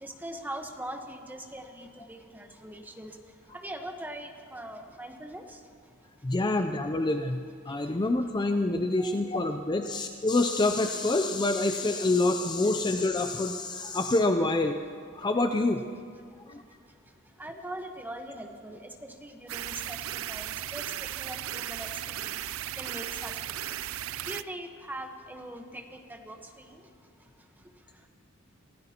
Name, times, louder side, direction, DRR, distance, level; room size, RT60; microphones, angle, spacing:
voice 1, 0.0-3.2 3.6-5.6 9.0-9.2 17.4-21.9 22.2-22.4 22.8-23.3 24.3-25.8 26.1-26.7, right 1 dB, 10° right, 4 dB, 1.1 m, -41 dB
voice 2, 6.2-14.8 15.1-15.8 16.5-16.6, left 2 dB, 20° left, 6 dB, 0.5 m, -26 dB
sound 1, 19.5-24.4, right 12 dB, 80° right, 0.4 m, -36 dB
27.5 x 16.0 x 2.9 m, 2.2 s
head